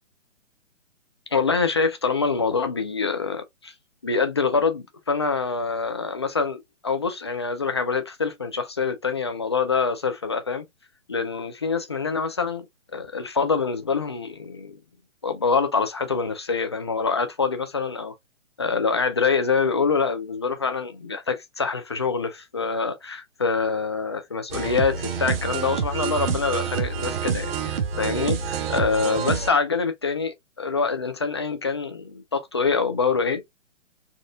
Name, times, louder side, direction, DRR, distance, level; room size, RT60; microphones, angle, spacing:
voice 1, 1.3-3.7 4.0-10.6 11.1-12.6 12.9-14.8 15.2-18.1 18.6-33.4, left 5 dB, 25° left, 0.4 m, -25 dB
sound 1, 24.5-29.5, right 7 dB, 50° right, 0.9 m, -27 dB
4.2 x 2.4 x 2.4 m
hypercardioid pair, 150°, 38 cm